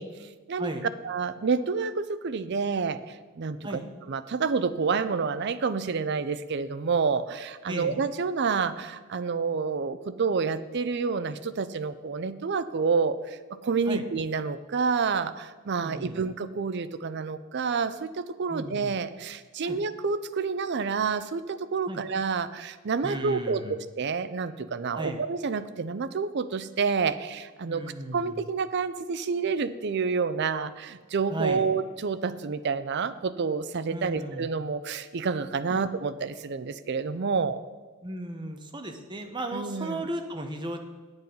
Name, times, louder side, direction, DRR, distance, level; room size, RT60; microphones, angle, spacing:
voice 1, 0.0-0.7 1.0-3.6 4.1-27.8 28.1-37.6 39.5-40.1, right 5 dB, 50° right, 13 dB, 0.5 m, -29 dB
voice 2, 7.7-8.0 13.9-14.0 15.8-16.2 18.5-19.0 19.6-19.8 21.9-22.0 23.0-23.8 24.9-25.2 27.7-28.4 31.3-31.7 33.9-34.5 35.7-35.8 38.0-40.8, right 1 dB, 20° right, 5 dB, 0.9 m, -35 dB
9.0 x 8.1 x 5.5 m, 1.4 s
head